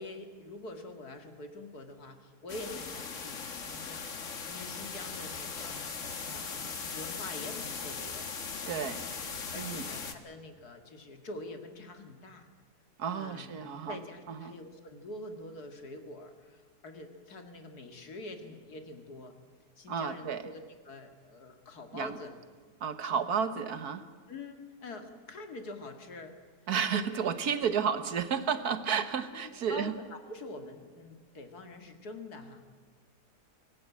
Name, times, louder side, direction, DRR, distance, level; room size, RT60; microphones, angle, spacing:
voice 1, 0.0-4.1 4.5-8.3 8.7-8.9 9.5-12.5 13.2-13.5 13.9-19.4 19.8-22.3 23.1-23.2 24.3-26.4 26.9-27.3 28.9-29.0 29.7-32.7, left 2 dB, 70° left, 6 dB, 2.5 m, -45 dB
sound 1, 2.5-10.1, left 5 dB, 50° left, 1.8 m, -39 dB
voice 2, 8.7-9.0 9.5-9.8 13.0-14.0 14.3-14.5 19.9-20.5 21.9-22.2 22.8-24.0 26.7-29.9, right 7 dB, 65° right, 11 dB, 1.6 m, -32 dB
24.5 x 18.5 x 8.4 m, 1.5 s
omnidirectional pair, 1.7 m